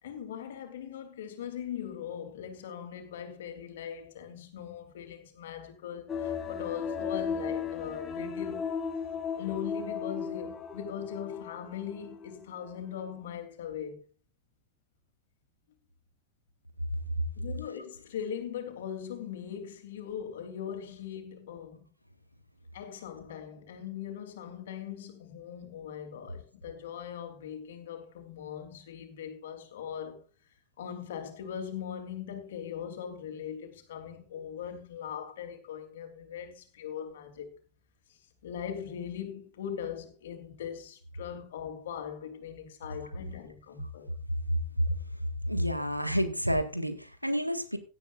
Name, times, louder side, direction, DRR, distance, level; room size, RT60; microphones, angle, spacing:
voice 1, 0.0-8.7 9.4-14.0 17.4-21.9 22.7-30.2 30.8-37.5 38.4-44.1, left 8 dB, 60° left, 3.1 m, -40 dB
sound 1, 6.1-12.3 12.7-12.8, left 6 dB, 25° left, 1.5 m, -35 dB
voice 2, 45.5-47.8, equal, 90° right, 1.7 m, -29 dB
17.0 x 12.0 x 2.5 m
figure-of-eight pair, 90°, 0 cm